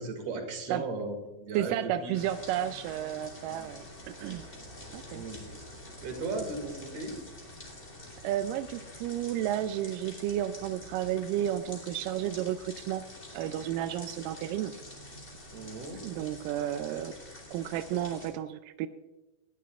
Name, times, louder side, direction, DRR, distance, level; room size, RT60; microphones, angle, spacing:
voice 1, 0.0-2.2 3.5-3.7 5.1-5.4 6.0-7.2 15.5-16.0 16.9-17.0, right 3 dB, 45° right, 5 dB, 2.9 m, -37 dB
voice 2, 1.5-4.4 4.9-5.2 8.2-13.0 13.3-14.7 16.0-17.1 17.5-18.9, right 11 dB, 85° right, 10 dB, 1.9 m, -32 dB
sound 1, 2.1-18.3, left 1 dB, 20° left, 2.6 m, -47 dB
19.5 x 14.0 x 2.4 m, 1.1 s
omnidirectional pair, 4.3 m